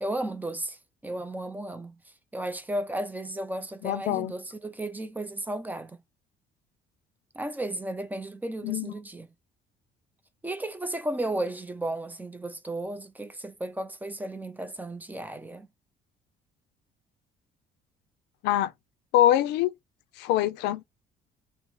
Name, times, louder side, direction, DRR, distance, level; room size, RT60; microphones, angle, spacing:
voice 1, 0.0-6.0 7.3-9.3 10.4-15.7, right 1 dB, 10° right, 0.4 m, -34 dB
voice 2, 3.8-4.3 8.6-8.9 18.4-18.7 19.1-19.7 20.2-20.8, left 12 dB, 85° left, 0.4 m, -24 dB
2.8 x 2.0 x 3.0 m
cardioid pair, 110°, 17 cm